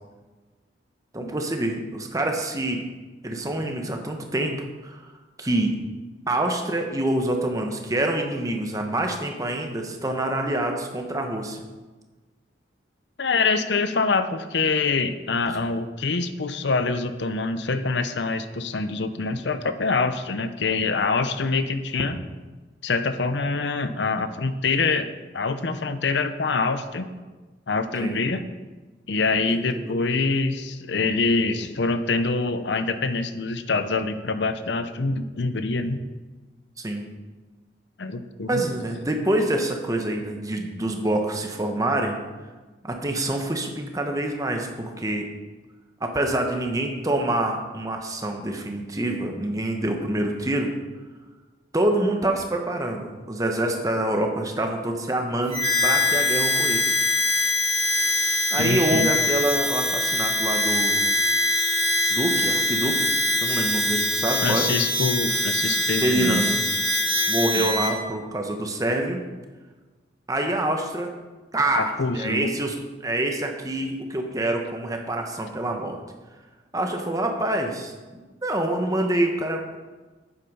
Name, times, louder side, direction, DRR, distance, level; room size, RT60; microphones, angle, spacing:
voice 1, 1.1-2.8 3.2-5.0 5.4-5.8 6.3-11.6 15.5-15.6 28.0-28.2 29.5-30.0 36.8-37.0 38.5-42.2 42.8-45.3 46.0-50.7 51.7-56.9 58.5-61.0 62.1-63.1 63.4-64.7 66.0-66.6 67.3-69.2 70.3-71.1 71.5-72.8 73.0-76.0 76.7-79.8, right 1 dB, 20° right, 3 dB, 1.1 m, -26 dB
voice 2, 13.2-22.2 22.8-27.1 27.7-28.4 29.1-36.0 38.0-38.6 58.6-59.1 63.9-66.4 67.6-67.7 71.7-72.5, left 3 dB, 70° left, 11 dB, 0.7 m, -25 dB
Harmonica, 55.5-67.9, left 2 dB, 35° right, 2.6 m, -23 dB
8.9 x 8.5 x 5.5 m, 1.3 s
head